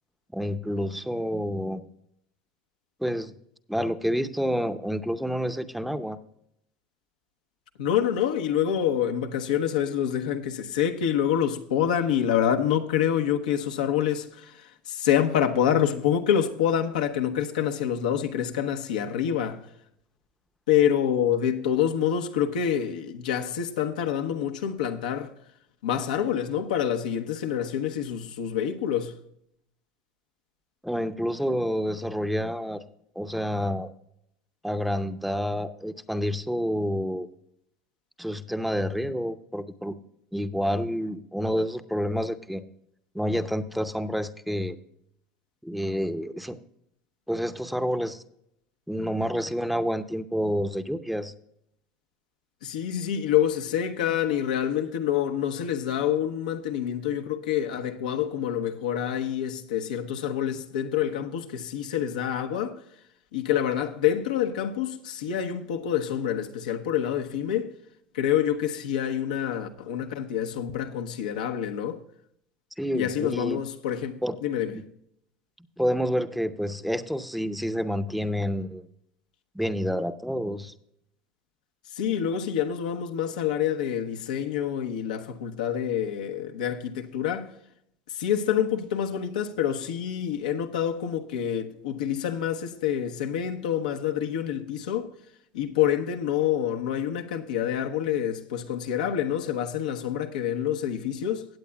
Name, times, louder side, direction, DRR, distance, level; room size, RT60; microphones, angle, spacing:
voice 1, 0.3-1.8 3.0-3.3 3.7-6.2 30.8-32.8 33.2-33.9 34.6-37.3 38.2-40.0 40.3-42.6 43.1-44.8 45.6-46.6 47.3-48.2 48.9-51.3 72.8-73.6 74.2-74.4 74.7-74.8 75.8-78.9 79.5-80.7, equal, ahead, 0.7 m, -28 dB
voice 2, 7.8-19.6 20.7-25.3 25.8-29.2 52.6-62.8 63.3-67.7 68.1-72.0 72.9-74.7 81.9-87.5 88.1-95.1 95.5-101.5, left 9 dB, 90° left, 1.0 m, -27 dB
16.5 x 8.5 x 2.3 m
supercardioid pair, 95°, 4 cm